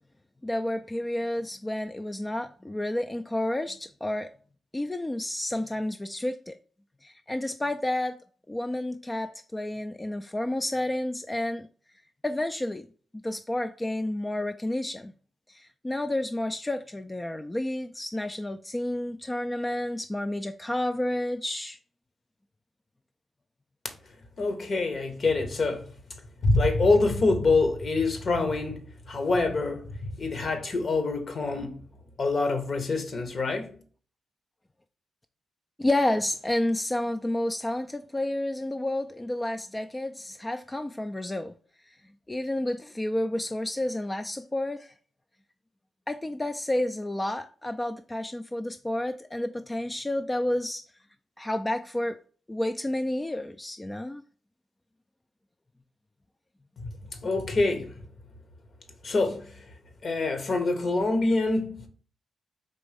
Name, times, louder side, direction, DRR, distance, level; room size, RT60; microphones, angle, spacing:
voice 1, 0.4-4.3 4.7-6.5 7.0-8.2 8.5-11.7 12.2-12.9 13.2-15.1 15.5-21.8 35.8-41.5 42.3-44.9 46.1-50.8 51.4-52.2 52.5-54.2, left 1 dB, 20° left, 0.3 m, -30 dB
voice 2, 24.4-25.9 26.4-28.8 29.1-31.8 32.2-33.7 57.2-57.9 59.0-59.6 60.0-61.9, left 3 dB, 55° left, 1.0 m, -25 dB
4.2 x 3.0 x 3.4 m
supercardioid pair, 55°, 0 cm